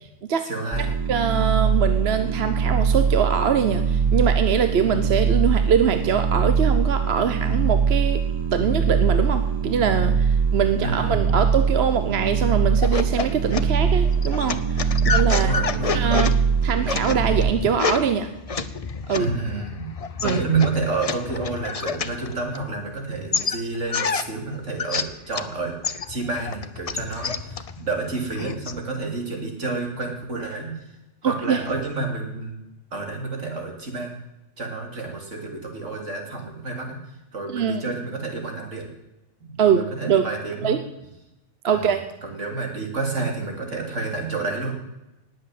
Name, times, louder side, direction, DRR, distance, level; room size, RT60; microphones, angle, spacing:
voice 1, 0.4-0.9 10.8-11.4 14.9-16.0 19.2-19.9 20.2-25.7 26.1-30.7 31.2-32.6 32.9-34.1 34.6-37.0 37.3-38.9 39.4-40.8 41.7-44.7, right 3 dB, 75° right, 1 dB, 3.3 m, -29 dB
sound 1, 0.7-17.5, right 6 dB, 30° right, 0.5 m, -22 dB
voice 2, 1.1-8.2 8.5-15.5 15.9-16.3 16.6-18.3 19.1-19.3 20.2-20.4 31.2-31.6 37.5-37.8 39.6-40.2 40.6-40.8 41.6-42.0, right 7 dB, 60° right, 8 dB, 1.0 m, -23 dB
sound 2, 12.8-22.9 23.3-25.5 25.8-28.8, left 5 dB, 35° left, 0.6 m, -29 dB
19.0 x 7.8 x 7.6 m, 0.96 s
omnidirectional pair, 1.3 m